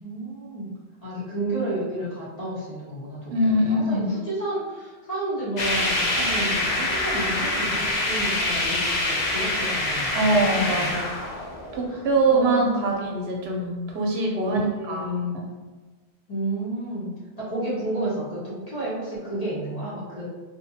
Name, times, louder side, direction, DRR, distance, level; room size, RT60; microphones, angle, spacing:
voice 1, 0.0-0.7 1.0-11.0 11.9-12.0 12.3-12.9 14.5-15.3 16.3-17.1 17.4-20.3, right 1 dB, 40° left, -8 dB, 0.9 m, -31 dB
voice 2, 3.3-4.1 10.1-11.1 11.7-15.1, right 1 dB, 75° right, -1 dB, 0.8 m, -23 dB
sound 1, 5.6-12.2, left 2 dB, 55° left, 0.5 m, -25 dB
2.8 x 2.1 x 2.6 m, 1.3 s
omnidirectional pair, 1.1 m